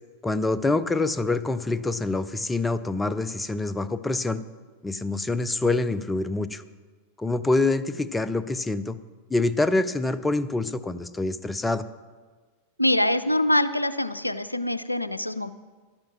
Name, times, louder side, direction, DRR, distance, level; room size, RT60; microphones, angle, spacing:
voice 1, 0.2-4.4 4.8-6.6 7.2-9.0 9.3-11.8, left 2 dB, 10° left, 14 dB, 0.5 m, -26 dB
voice 2, 12.8-15.5, left 1 dB, 85° left, 14 dB, 0.4 m, -24 dB
11.5 x 8.8 x 5.8 m, 1.4 s
figure-of-eight pair, 90°, 0 cm